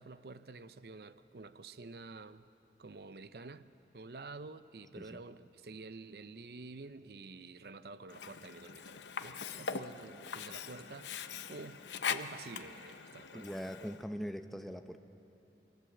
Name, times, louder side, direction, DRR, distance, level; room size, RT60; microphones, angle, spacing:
voice 1, 0.0-2.5 2.8-3.7 3.9-13.5 13.8-13.9, right 3 dB, 60° right, 0.6 m, -49 dB
Sink (filling or washing), 8.1-14.1, left 6 dB, 85° left, 0.7 m, -42 dB
voice 2, 13.3-15.0, equal, ahead, 0.6 m, -41 dB
23.0 x 17.0 x 7.8 m
head